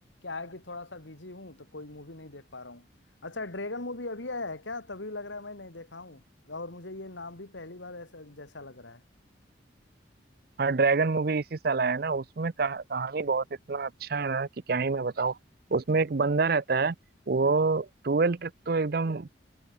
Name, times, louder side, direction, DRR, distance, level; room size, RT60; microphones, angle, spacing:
voice 1, 0.0-2.9 3.2-9.0, left 2 dB, 80° left, 2.7 m, -40 dB
voice 2, 10.6-15.4 15.7-17.0 17.3-19.3, right 4 dB, 55° right, 0.6 m, -27 dB
head